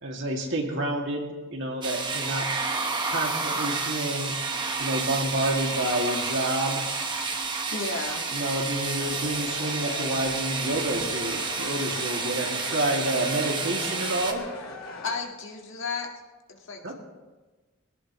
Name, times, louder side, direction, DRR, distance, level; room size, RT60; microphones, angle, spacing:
voice 1, 0.0-2.5 3.1-4.3 4.8-6.8 8.3-14.5 16.8-16.9, right 1 dB, 60° right, 0 dB, 2.4 m, -29 dB
sound 1, 1.8-14.3, right 4 dB, 20° right, 1.2 m, -30 dB
voice 2, 7.7-8.3 15.0-16.1 16.5-16.9, left 4 dB, 60° left, 1 dB, 1.9 m, -33 dB
sound 2, 9.0-15.2, left 3 dB, 85° left, 2.3 m, -40 dB
22.0 x 17.5 x 3.1 m, 1.2 s
head